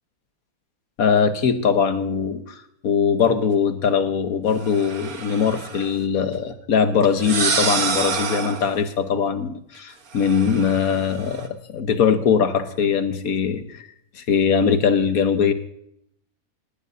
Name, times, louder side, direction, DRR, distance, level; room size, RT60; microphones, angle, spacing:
voice 1, 1.0-2.6 2.8-13.9 14.2-15.5, left 6 dB, 70° left, 9 dB, 1.5 m, -21 dB
sound 1, 4.6-5.9 7.0-8.7 10.1-11.5, right 5 dB, 75° right, 1.7 m, -27 dB
19.0 x 17.0 x 2.7 m, 0.74 s
omnidirectional pair, 1.6 m